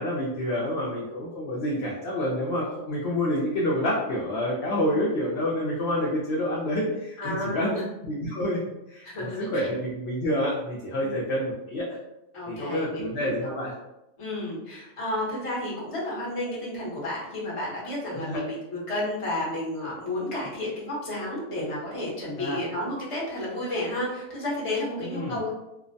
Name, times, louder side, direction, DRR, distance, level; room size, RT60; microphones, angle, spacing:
voice 1, 0.0-7.7 8.0-8.6 8.9-12.0 12.5-13.7 18.2-18.4 22.4-22.6 25.0-25.4, left 1 dB, 65° left, -5 dB, 0.7 m, -28 dB
voice 2, 7.2-7.8 9.0-9.7 11.0-11.1 12.3-13.5 14.2-25.5, left 1 dB, 30° left, -6 dB, 0.7 m, -32 dB
2.5 x 2.1 x 2.5 m, 0.93 s
omnidirectional pair, 1.4 m